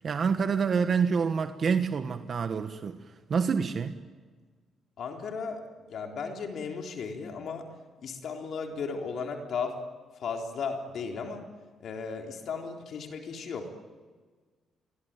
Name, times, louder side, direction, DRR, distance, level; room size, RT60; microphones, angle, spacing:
voice 1, 0.0-4.0, right 6 dB, 50° right, 9 dB, 1.3 m, -27 dB
voice 2, 5.0-5.6 5.9-7.7 8.0-9.8 10.1-11.4 11.8-13.7, left 5 dB, 65° left, 3 dB, 3.8 m, -35 dB
27.0 x 23.0 x 9.0 m, 1.5 s
cardioid pair, 90°, 0 cm